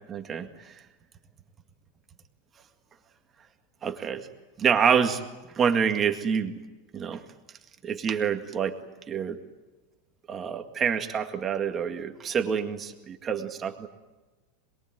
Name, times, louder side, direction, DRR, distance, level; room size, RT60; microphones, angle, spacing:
voice 1, 0.1-0.7 3.8-4.3 4.6-5.2 5.6-6.5 6.9-7.2 7.8-8.8 9.1-9.4 10.3-13.9, right 7 dB, 15° right, 6 dB, 1.9 m, -27 dB
27.0 x 22.0 x 9.2 m, 1.1 s
supercardioid pair, 175°, 0 cm